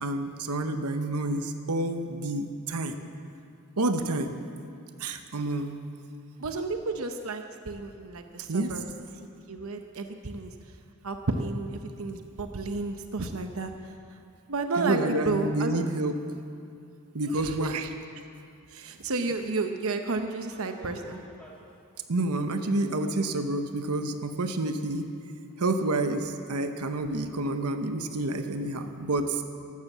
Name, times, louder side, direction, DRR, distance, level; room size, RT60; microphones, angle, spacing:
voice 1, 0.0-2.9 3.8-4.3 5.0-5.8 8.5-8.8 14.8-16.2 17.1-17.9 22.1-25.1 25.6-29.4, right 2 dB, 90° right, 7 dB, 1.0 m, -29 dB
voice 2, 6.4-8.8 9.5-10.5 11.0-13.7 14.5-15.0 15.3-15.8 17.3-17.9 18.7-21.2, right 3 dB, 65° right, 6 dB, 0.8 m, -32 dB
sound 1, 20.4-21.7 22.7-22.8 23.5-23.6 24.1-24.2 24.7-24.8 25.4-25.5 25.8-25.9, equal, 5° left, 2.3 m, -49 dB
14.5 x 12.5 x 7.3 m, 2.5 s
head